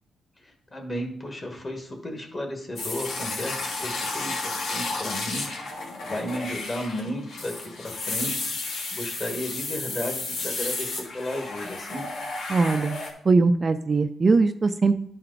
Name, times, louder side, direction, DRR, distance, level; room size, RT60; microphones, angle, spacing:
voice 1, 0.4-5.5 5.8-12.0, left 1 dB, 30° left, 4 dB, 1.5 m, -34 dB
sound 1, 2.8-13.1, left 3 dB, 80° left, 1.7 m, -32 dB
voice 2, 12.5-13.0 13.2-15.0, right 3 dB, 35° right, 9 dB, 0.4 m, -21 dB
11.5 x 4.4 x 3.9 m, 0.67 s
wide cardioid pair, 130°, 0 cm